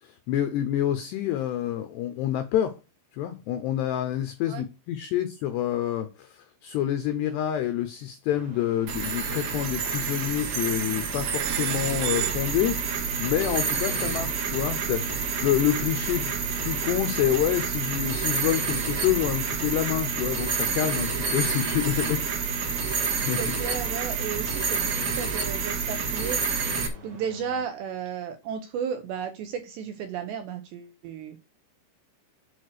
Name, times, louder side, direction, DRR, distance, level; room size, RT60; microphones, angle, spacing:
voice 1, 0.0-2.8 3.1-12.9 13.2-22.2 22.6-22.8 23.2-23.4, left 12 dB, 80° left, 2.5 m, -27 dB
sound 1, 8.3-27.6, left 2 dB, 40° right, 2.9 m, -47 dB
sound 2, 8.9-26.9, right 5 dB, 60° right, 2.7 m, -28 dB
voice 2, 22.9-26.4 27.0-31.4, right 7 dB, 75° right, 2.8 m, -34 dB
8.5 x 4.6 x 6.5 m
omnidirectional pair, 5.9 m